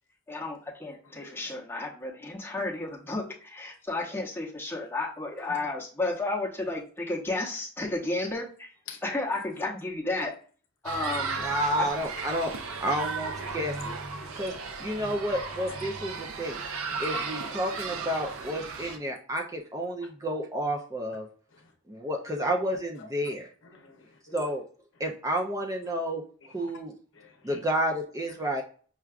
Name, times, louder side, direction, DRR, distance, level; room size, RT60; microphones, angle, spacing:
voice 1, 0.3-8.7 9.0-10.3 10.8-11.4 11.8-11.9, left 2 dB, 10° left, -3 dB, 0.8 m, -32 dB
voice 2, 1.0-1.5 5.5-5.6 8.9-9.0 11.0-11.2 11.9-12.1 13.7-13.8 14.2-14.4 16.9-17.0 17.4-17.6 20.0-20.1 21.5-21.7 23.0-23.1 23.6-24.5 26.6-26.7 27.1-27.6, left 5 dB, 65° left, 4 dB, 0.7 m, -48 dB
sound 1, 10.8-19.0, right 4 dB, 80° right, 0.5 m, -35 dB
voice 3, 11.4-12.5 12.8-14.0 14.3-14.5 14.8-16.6 17.0-21.3 21.9-23.5 24.3-24.6 25.0-26.2 26.5-26.9 27.4-28.6, equal, 15° right, 2 dB, 0.4 m, -30 dB
5.6 x 2.3 x 2.4 m, 0.42 s
head